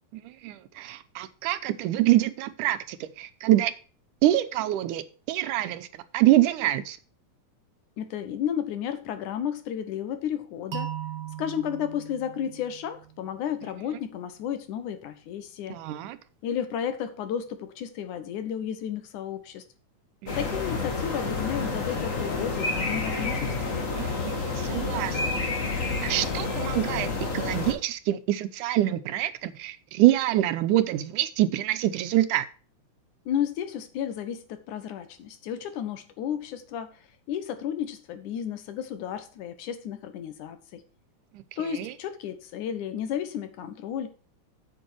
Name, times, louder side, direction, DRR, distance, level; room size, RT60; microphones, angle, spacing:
voice 1, 0.1-3.7 4.2-5.9 6.1-7.0 15.7-16.2 20.2-20.4 23.9-25.3 26.0-32.5 41.8-41.9, right 14 dB, 90° right, 2.3 m, -25 dB
voice 2, 8.0-10.9 11.4-15.8 16.4-19.6 20.4-23.8 33.3-40.8 41.6-44.1, left 9 dB, 75° left, 2.7 m, -33 dB
sound 1, 10.7-13.6, right 9 dB, 50° right, 1.5 m, -38 dB
sound 2, 20.3-27.7, left 3 dB, 35° left, 1.6 m, -29 dB
8.3 x 8.1 x 4.5 m
omnidirectional pair, 3.5 m